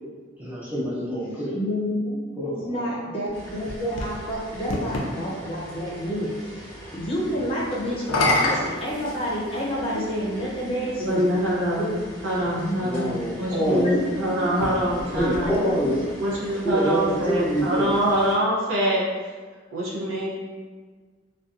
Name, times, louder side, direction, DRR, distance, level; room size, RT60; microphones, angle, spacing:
voice 1, 0.4-1.6 2.4-3.0 7.3-7.7 12.7-13.9 15.0-15.9 16.5-18.0, right 1 dB, 10° right, -9 dB, 0.7 m, -26 dB
voice 2, 1.5-11.2 11.7-12.0 12.5-12.8 13.8-14.3 14.7-14.9 15.4-16.0, equal, 30° left, -5 dB, 0.5 m, -29 dB
sound 1, 3.3-5.1 7.9-9.7 10.6-10.7 14.5-16.0, left 2 dB, 85° left, 0.4 m, -27 dB
sound 2, 3.3-18.3, equal, 10° left, 1.0 m, -42 dB
sound 3, 9.9-13.1, left 1 dB, 35° right, 0.4 m, -45 dB
voice 3, 11.0-15.6 16.2-19.3 19.7-20.3, equal, 80° right, -5 dB, 0.7 m, -25 dB
2.5 x 2.2 x 2.4 m, 1.5 s
head